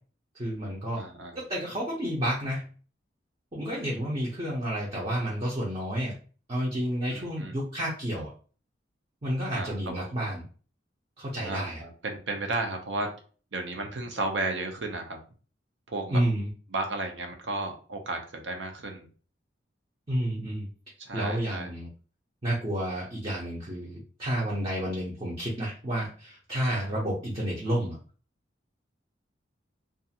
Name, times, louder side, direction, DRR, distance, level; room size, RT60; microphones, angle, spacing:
voice 1, 0.3-1.0 1.3-2.6 3.5-6.1 6.5-8.3 9.2-10.4 11.2-11.8 16.1-16.5 20.1-20.7 21.1-21.9 22.4-28.0, right 1 dB, 30° right, -4 dB, 0.6 m, -30 dB
voice 2, 1.0-1.4 7.1-7.6 9.5-10.1 11.4-13.1 13.5-15.2 15.9-16.2 16.7-19.1 21.0-21.7, right 2 dB, 75° right, 4 dB, 0.6 m, -33 dB
2.4 x 2.4 x 2.7 m, 0.39 s
head